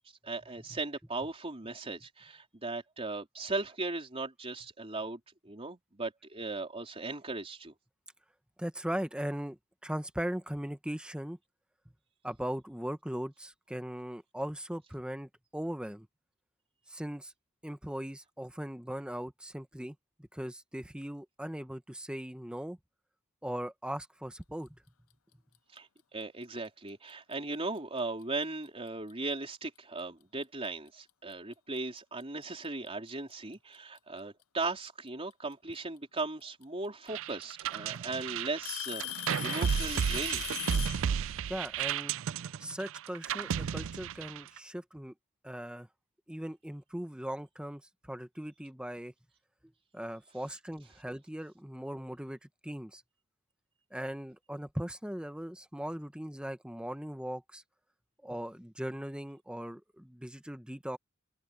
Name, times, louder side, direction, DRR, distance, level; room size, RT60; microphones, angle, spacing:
voice 1, 0.2-7.7 25.7-40.4, right 3 dB, 30° right, 4.0 m, -38 dB
voice 2, 8.6-11.4 12.2-16.1 16.9-17.3 17.6-22.8 23.4-24.7 41.5-42.1 42.6-45.1 45.4-45.9 46.3-47.8 48.1-49.1 49.9-53.0 53.9-57.6 58.2-61.0, equal, 5° right, 1.1 m, -39 dB
Alarm / Tick-tock, 27.1-27.3 28.2-28.3 29.1-29.2 30.9-31.0 32.2-32.3 33.5-34.0 35.7-35.8 37.1-37.2 37.5-38.0 38.6-41.1, left 14 dB, 90° left, 0.7 m, -39 dB
sound 1, 37.1-44.6, right 8 dB, 70° right, 0.4 m, -33 dB
open air
head